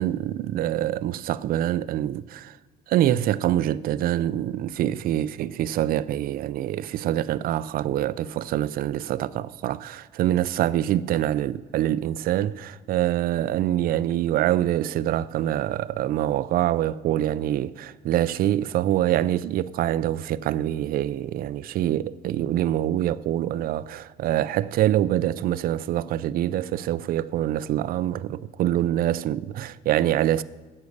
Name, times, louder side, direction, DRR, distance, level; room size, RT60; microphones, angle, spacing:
voice 1, 0.0-2.6 2.9-30.4, right 12 dB, 60° right, 0.4 m, -25 dB
9.8 x 8.2 x 6.5 m
cardioid pair, 110°, 17 cm